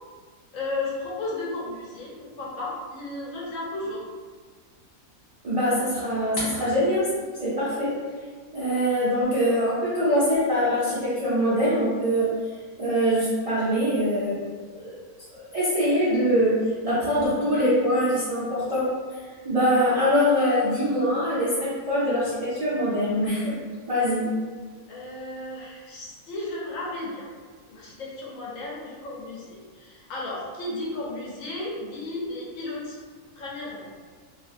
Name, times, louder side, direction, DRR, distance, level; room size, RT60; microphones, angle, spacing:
voice 1, 0.5-4.0 24.9-27.3 27.7-33.0 33.4-33.9, left 2 dB, 65° left, -5 dB, 1.0 m, -34 dB
voice 2, 5.4-7.1 7.4-7.9 8.5-12.3 12.8-14.4 14.7-15.0 15.3-18.9 19.4-23.6 23.9-24.4, equal, 60° right, -10 dB, 0.3 m, -23 dB
2.8 x 2.4 x 2.4 m, 1.5 s
omnidirectional pair, 1.6 m